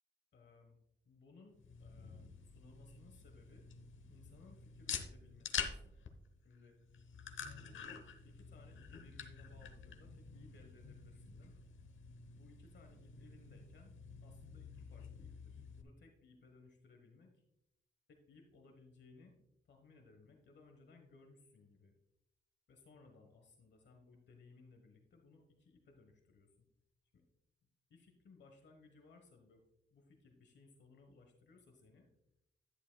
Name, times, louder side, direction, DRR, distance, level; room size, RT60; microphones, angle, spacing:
voice 1, 0.3-0.8 1.0-3.7 4.1-6.1 6.4-6.7 7.4-7.9 8.2-11.6 12.3-13.9 14.2-17.4 18.1-19.4 19.6-21.9 22.7-26.7 27.1-27.2 27.9-29.6 29.9-32.1, left 3 dB, 65° left, 3 dB, 1.1 m, -63 dB
sound 1, 1.5-15.8, left 7 dB, 85° left, 0.9 m, -48 dB
11.5 x 10.0 x 2.2 m, 0.83 s
wide cardioid pair, 160°, 20 cm